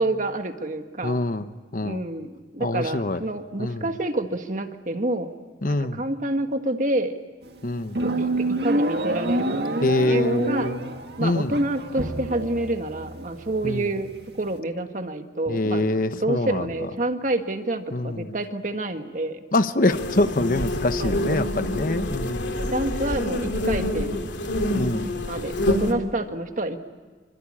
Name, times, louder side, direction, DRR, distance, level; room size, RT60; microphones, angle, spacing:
voice 1, 0.0-1.2 1.8-5.3 5.6-7.2 8.0-9.7 10.1-10.7 11.2-14.1 14.4-19.4 21.0-21.4 22.6-24.2 25.2-26.8, right 2 dB, 45° right, 7 dB, 1.6 m, -28 dB
voice 2, 1.0-2.0 2.6-3.2 3.6-3.8 5.6-6.0 7.6-8.0 9.8-10.9 11.2-11.5 13.6-13.9 15.5-16.7 17.9-18.3 19.5-22.6 24.7-25.1, left 2 dB, 50° left, 10 dB, 1.0 m, -25 dB
sound 1, 7.4-14.6, right 1 dB, 65° right, 1.9 m, -28 dB
sound 2, 19.9-25.9, left 1 dB, 85° left, 2.7 m, -27 dB
26.0 x 25.0 x 8.8 m, 1.4 s
head